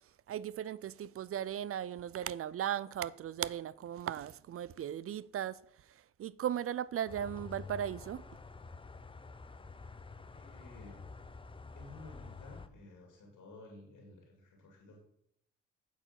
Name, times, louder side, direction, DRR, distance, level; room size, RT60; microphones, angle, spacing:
voice 1, 0.3-5.6 5.9-8.2, right 10 dB, 45° right, 0.4 m, -37 dB
sound 1, 7.1-12.7, left 4 dB, 15° left, 0.6 m, -49 dB
voice 2, 10.3-11.0 11.7-15.0, left 2 dB, 65° left, 2.3 m, -53 dB
8.4 x 4.6 x 5.8 m
supercardioid pair, 55°, 33 cm